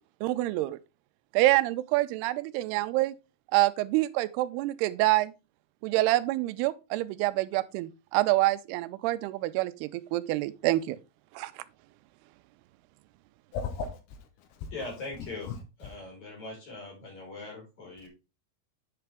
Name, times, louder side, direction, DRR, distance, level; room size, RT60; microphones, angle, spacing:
voice 1, 0.2-0.8 1.3-3.1 3.5-5.3 5.8-11.0 11.3-11.5, right 17 dB, 90° right, 2.6 m, -26 dB
voice 2, 13.5-14.7 15.4-15.6, left 5 dB, 80° left, 3.0 m, -36 dB
voice 3, 14.7-18.1, left 3 dB, 45° left, 5.7 m, -41 dB
8.8 x 5.9 x 3.4 m
omnidirectional pair, 4.5 m